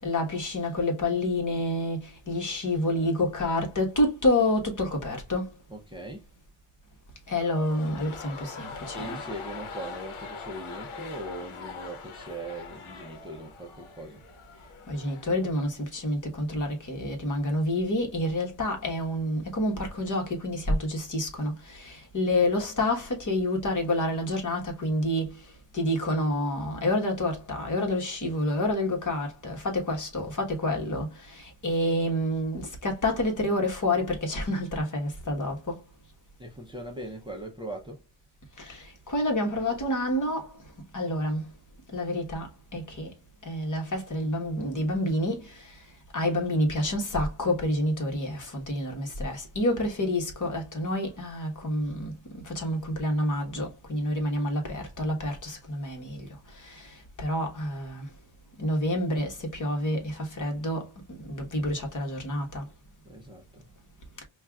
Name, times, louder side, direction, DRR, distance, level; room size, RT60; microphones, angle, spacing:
voice 1, 0.0-5.5 7.3-9.2 14.9-25.3 25.7-35.6 38.6-40.5 40.9-41.5 41.9-43.1 43.4-45.5 46.1-56.3 56.6-58.1 58.6-60.9 61.3-62.7, left 1 dB, 35° left, 1.2 m, -28 dB
voice 2, 5.7-6.3 8.9-14.2 36.4-38.0 63.0-63.7, right 1 dB, 10° right, 0.6 m, -40 dB
sound 1, 7.4-15.5 15.8-15.9, left 5 dB, 75° left, 0.9 m, -42 dB
5.3 x 2.4 x 2.3 m
wide cardioid pair, 130°, 50 cm